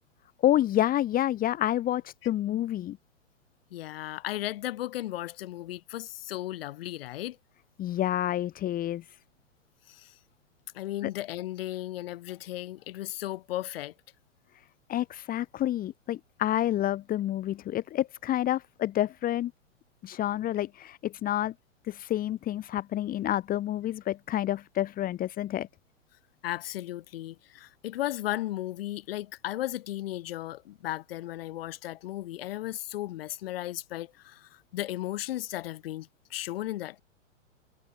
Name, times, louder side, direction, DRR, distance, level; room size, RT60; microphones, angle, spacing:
voice 1, 0.4-3.0 7.8-9.0 14.9-19.5 20.0-21.5 21.9-25.7, left 13 dB, 20° left, 2.3 m, -28 dB
voice 2, 3.7-7.4 9.9-10.2 10.7-13.9 26.4-37.0, left 15 dB, 50° left, 2.6 m, -35 dB
figure-of-eight pair, 110°, 38 cm